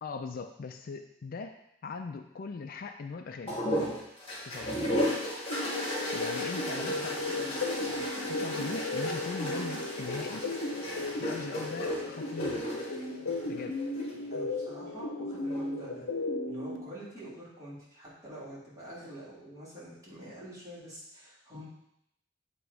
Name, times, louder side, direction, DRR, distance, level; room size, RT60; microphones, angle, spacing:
voice 1, 0.0-3.6 4.4-4.8 6.1-7.7 8.2-10.5 11.2-12.7 13.4-13.8, left 4 dB, 50° left, 6 dB, 0.4 m, -40 dB
sound 1, 3.5-14.1 15.3-15.9, equal, 30° left, 1.6 m, -35 dB
sound 2, 5.5-16.8, left 2 dB, 85° left, 0.8 m, -35 dB
voice 2, 6.7-8.3 14.3-16.1 16.5-21.6, right 1 dB, 20° right, -8 dB, 2.3 m, -47 dB
7.9 x 3.0 x 4.7 m, 0.79 s
head